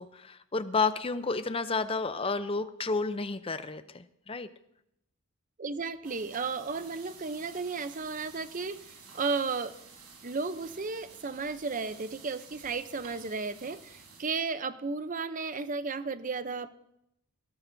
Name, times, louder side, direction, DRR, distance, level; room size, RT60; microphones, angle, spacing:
voice 1, 0.0-4.5, left 4 dB, 25° left, 12 dB, 0.6 m, -31 dB
voice 2, 5.6-9.7 10.2-16.7, right 4 dB, 35° right, 12 dB, 0.7 m, -34 dB
sound 1, 6.0-14.2, right 5 dB, 85° right, 4.4 m, -52 dB
19.0 x 16.5 x 2.7 m, 0.79 s
head